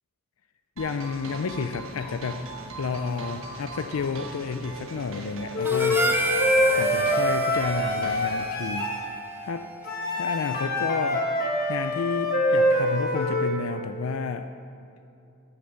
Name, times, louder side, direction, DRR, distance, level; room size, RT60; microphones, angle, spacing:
voice 1, 0.8-2.5 2.8-6.1 6.8-8.9 9.4-9.7 10.1-11.3 11.7-14.5, left 5 dB, 90° left, 9 dB, 0.5 m, -31 dB
sound 1, 0.8-8.5, right 2 dB, 75° right, 1.2 m, -40 dB
Wind instrument woodwind instrument, 5.5-9.1 9.8-13.6, left 1 dB, 45° left, 1.5 m, -25 dB
Harmonica, 5.6-10.1, right 1 dB, 10° right, 0.7 m, -30 dB
14.5 x 6.8 x 6.6 m, 2.6 s
head